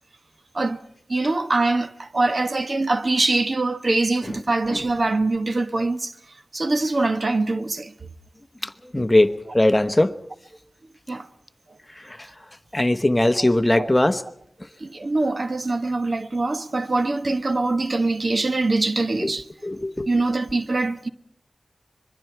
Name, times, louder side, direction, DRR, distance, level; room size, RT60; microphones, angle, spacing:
voice 1, 1.1-6.1 6.5-7.9 9.0-9.1 11.1-11.3 13.4-13.5 13.8-13.9 14.8-19.4 20.1-21.1, right 2 dB, 50° right, 1.1 m, -23 dB
voice 2, 8.6-10.1 12.0-12.2 12.7-14.2 19.2-19.3 19.6-20.1, left 1 dB, 20° left, 0.9 m, -20 dB
26.0 x 22.5 x 4.6 m
wide cardioid pair, 65°, 0 cm